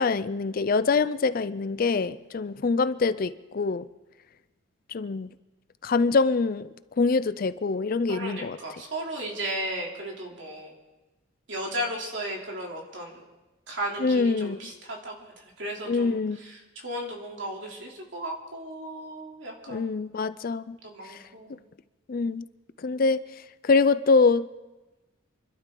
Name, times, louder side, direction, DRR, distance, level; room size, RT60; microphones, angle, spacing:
voice 1, 0.0-3.9 4.9-5.3 5.8-6.7 7.0-8.6 14.0-14.7 15.9-16.4 19.7-20.8 21.1-21.2 22.1-22.4 22.8-23.2 23.6-24.5, left 4 dB, 45° left, 15 dB, 0.4 m, -24 dB
voice 2, 8.1-10.7 11.5-13.2 13.7-19.8 20.8-21.6, right 1 dB, 65° right, -1 dB, 3.2 m, -35 dB
27.5 x 12.0 x 3.8 m, 1.1 s
head